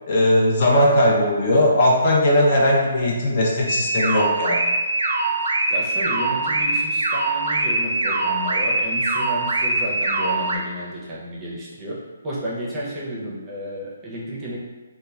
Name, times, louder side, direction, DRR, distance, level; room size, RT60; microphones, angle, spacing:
voice 1, 0.1-4.6, left 1 dB, 45° left, -3 dB, 0.6 m, -18 dB
sound 1, 3.7-10.6, right 2 dB, 75° right, 0.4 m, -23 dB
voice 2, 5.7-14.6, equal, 20° right, -6 dB, 0.6 m, -32 dB
3.0 x 2.2 x 2.3 m, 1.3 s
figure-of-eight pair, 145°, 0 cm